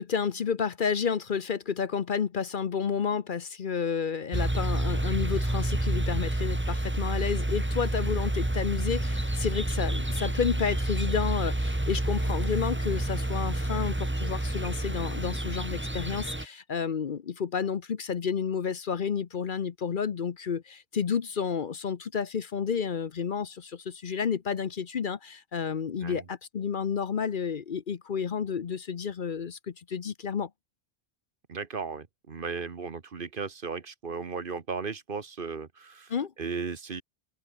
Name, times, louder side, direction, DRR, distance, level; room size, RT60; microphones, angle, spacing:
voice 1, 0.0-30.5 36.1-36.3, left 6 dB, 55° left, 0.9 m, -31 dB
sound 1, 4.3-16.5, right 1 dB, 10° right, 1.5 m, -29 dB
voice 2, 31.5-36.1 36.4-37.0, right 5 dB, 55° right, 1.4 m, -36 dB
open air
omnidirectional pair, 1.1 m